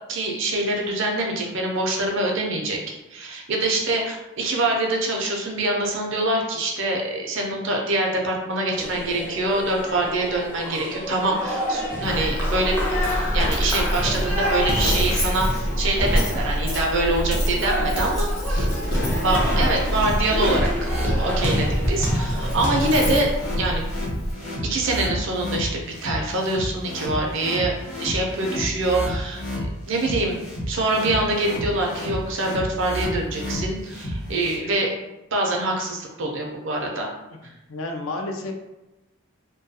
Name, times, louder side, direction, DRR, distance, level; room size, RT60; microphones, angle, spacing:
voice 1, 0.1-2.8 3.1-18.7 19.2-23.3 23.6-23.8 24.7-27.7 28.0-29.4 29.8-30.4 30.7-34.9 35.3-37.1 37.4-37.5, right 2 dB, 60° right, 0 dB, 0.5 m, -25 dB
sound 1, 8.8-23.2, equal, 10° left, 0.4 m, -28 dB
Coin (dropping), 12.0-24.3, equal, 40° left, 0.8 m, -26 dB
sound 2, 18.6-34.5, equal, 85° left, 0.9 m, -31 dB
voice 2, 18.8-19.5 34.6-34.8 37.7-38.5, left 2 dB, 65° left, 3 dB, 0.4 m, -32 dB
2.3 x 2.2 x 2.7 m, 0.98 s
head